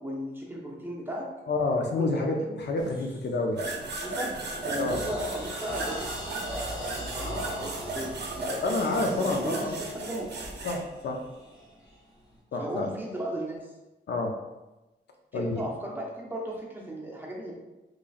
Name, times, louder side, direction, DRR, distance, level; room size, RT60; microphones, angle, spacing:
voice 1, 0.0-1.3 1.9-2.6 2.8-2.9 4.0-4.3 4.6-8.6 9.2-10.3 12.6-13.7 15.3-17.5, right 1 dB, 10° right, -3 dB, 0.6 m, -36 dB
voice 2, 1.5-3.6 4.8-5.2 8.6-9.8 10.6-11.2 12.5-12.9 14.1-14.3 15.3-15.6, left 2 dB, 70° left, 2 dB, 0.5 m, -28 dB
sound 1, 2.8-3.0 3.5-3.8 4.2-12.3, equal, 20° left, 0.9 m, -41 dB
sound 2, 3.5-10.8, right 2 dB, 65° right, 0.6 m, -35 dB
3.8 x 3.0 x 2.4 m, 1.0 s
wide cardioid pair, 175°, 19 cm